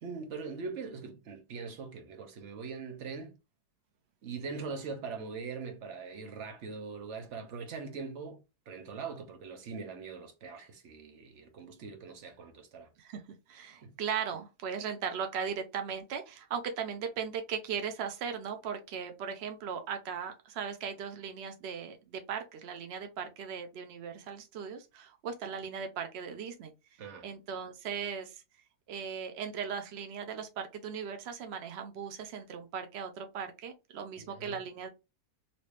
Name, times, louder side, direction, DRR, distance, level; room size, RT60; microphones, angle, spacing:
voice 1, 0.0-3.4 4.2-8.4 8.7-12.9 13.8-13.9 27.0-27.3 34.2-34.6, right 5 dB, 55° right, 0.9 m, -42 dB
voice 2, 13.5-26.7 27.2-28.4 28.9-34.9, right 7 dB, 80° right, 0.5 m, -38 dB
3.0 x 2.8 x 3.1 m
omnidirectional pair, 1.7 m